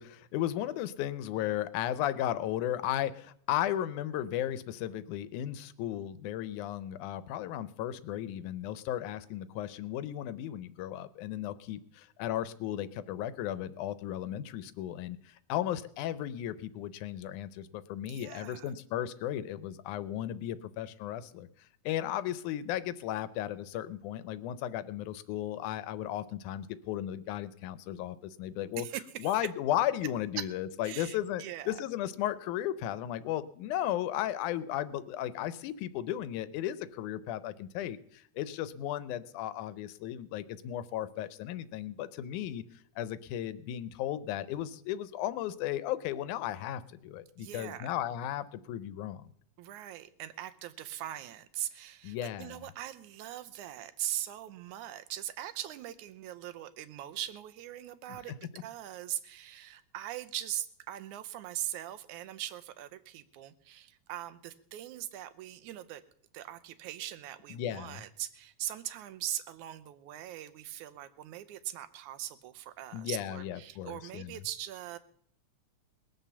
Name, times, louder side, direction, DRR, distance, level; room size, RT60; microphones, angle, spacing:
voice 1, 0.0-21.5 21.9-28.9 29.2-42.6 43.0-49.3 52.0-52.6 67.5-68.0 72.9-74.4, left 12 dB, 85° left, 15 dB, 2.2 m, -35 dB
voice 2, 18.1-18.7 28.8-29.4 30.8-31.8 47.4-47.9 49.6-58.3 58.6-66.0 66.3-75.0, right 12 dB, 85° right, 11 dB, 2.2 m, -41 dB
19.5 x 7.4 x 6.9 m, 0.63 s
omnidirectional pair, 3.4 m